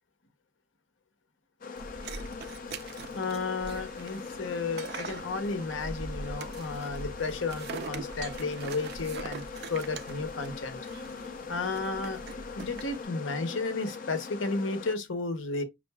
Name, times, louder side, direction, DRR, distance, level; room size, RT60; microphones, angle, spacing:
sound 1, 1.6-15.0, left 4 dB, 45° left, 0.5 m, -41 dB
sound 2, 1.8-13.0, right 4 dB, 55° right, 0.4 m, -43 dB
voice 1, 3.1-9.4 9.7-10.8 11.5-15.6, left 3 dB, 80° left, 0.8 m, -33 dB
5.4 x 2.5 x 2.2 m
head